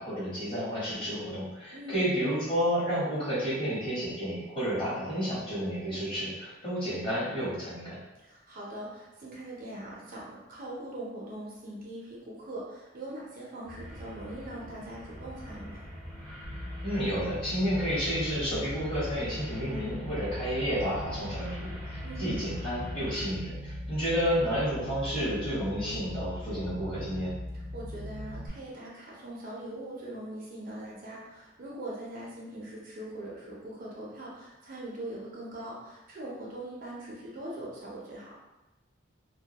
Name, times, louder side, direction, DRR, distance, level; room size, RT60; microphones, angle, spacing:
voice 1, 0.0-8.0 16.8-27.3, equal, 25° left, -9 dB, 1.0 m, -31 dB
voice 2, 1.7-2.1 8.2-15.8 22.0-22.5 27.5-38.3, right 1 dB, 45° right, -4 dB, 0.5 m, -41 dB
sound 1, 13.6-23.3, equal, 5° left, 0.6 m, -45 dB
sound 2, 16.4-28.5, left 1 dB, 70° left, 0.8 m, -40 dB
2.2 x 2.1 x 2.8 m, 1.0 s
head